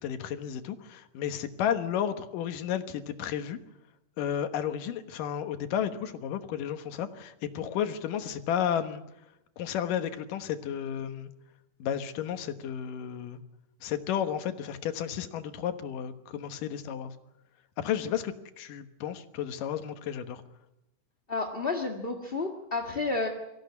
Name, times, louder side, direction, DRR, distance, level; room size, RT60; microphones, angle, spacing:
voice 1, 0.0-3.6 4.2-9.0 9.6-11.3 11.8-13.4 13.8-17.1 17.8-20.4, left 9 dB, 90° left, 8 dB, 2.9 m, -32 dB
voice 2, 21.3-23.3, left 3 dB, 25° left, 1 dB, 1.2 m, -31 dB
24.0 x 15.5 x 9.5 m, 0.92 s
omnidirectional pair, 3.7 m